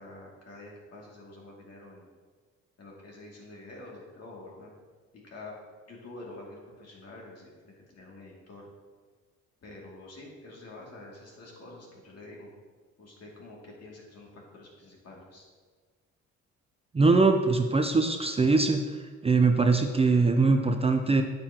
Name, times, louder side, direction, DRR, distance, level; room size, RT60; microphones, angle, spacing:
voice 1, 0.0-2.1 2.8-4.7 5.2-5.5 5.9-8.7 9.6-12.5 13.0-15.4, left 2 dB, 55° left, -3 dB, 2.5 m, -47 dB
voice 2, 16.9-18.8 19.2-21.2, right 3 dB, 20° right, 5 dB, 0.5 m, -22 dB
8.8 x 7.9 x 2.9 m, 1.5 s
cardioid pair, 90°, 30 cm